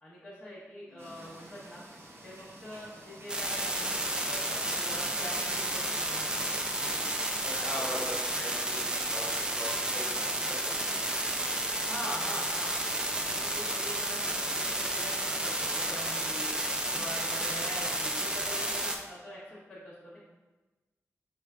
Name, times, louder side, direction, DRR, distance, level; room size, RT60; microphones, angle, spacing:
voice 1, 0.0-1.8 2.2-6.4 11.9-12.7 13.1-16.5 16.9-20.2, left 1 dB, 30° left, -10 dB, 0.8 m, -44 dB
sound 1, 1.0-6.9, right 1 dB, 55° right, 0.6 m, -50 dB
sound 2, 3.3-19.0, right 1 dB, 15° right, 0.3 m, -31 dB
voice 2, 7.4-10.8 13.6-13.7 16.8-17.1, equal, 10° left, -7 dB, 1.1 m, -41 dB
4.7 x 2.4 x 3.2 m, 1.2 s
wide cardioid pair, 170°, 5 cm